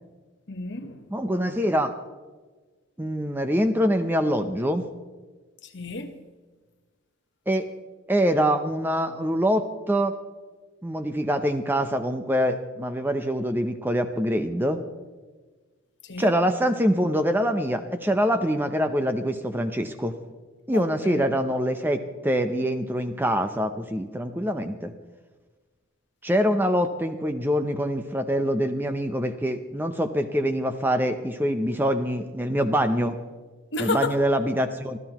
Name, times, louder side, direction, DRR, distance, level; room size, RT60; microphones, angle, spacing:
voice 1, 0.5-1.1 5.6-6.2 16.0-16.3 20.7-21.3 33.7-34.1, left 3 dB, 55° left, 1.2 m, -31 dB
voice 2, 1.1-1.9 3.0-4.9 7.5-7.7 8.1-10.2 10.8-14.8 16.2-20.2 20.7-24.9 26.2-33.2 33.8-35.0, equal, 10° right, 0.6 m, -24 dB
25.5 x 14.5 x 3.0 m
head